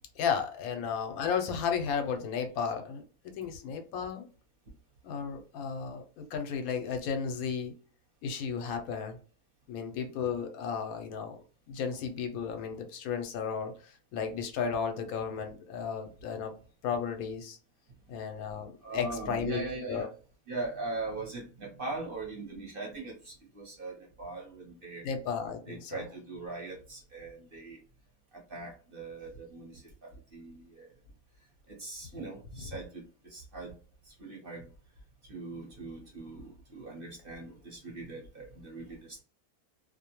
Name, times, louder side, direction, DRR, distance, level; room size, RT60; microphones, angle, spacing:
voice 1, 0.2-4.3 5.0-7.8 8.2-9.2 9.7-11.4 11.7-16.5 16.8-17.6 18.1-20.1 25.0-26.0, left 6 dB, 85° left, 6 dB, 1.1 m, -34 dB
voice 2, 18.8-20.1 20.5-25.1 25.5-27.8 28.3-30.9 31.7-33.7 34.1-34.7 35.3-39.2, right 3 dB, 45° right, -1 dB, 0.9 m, -41 dB
2.4 x 2.1 x 2.9 m, 0.39 s
omnidirectional pair, 1.5 m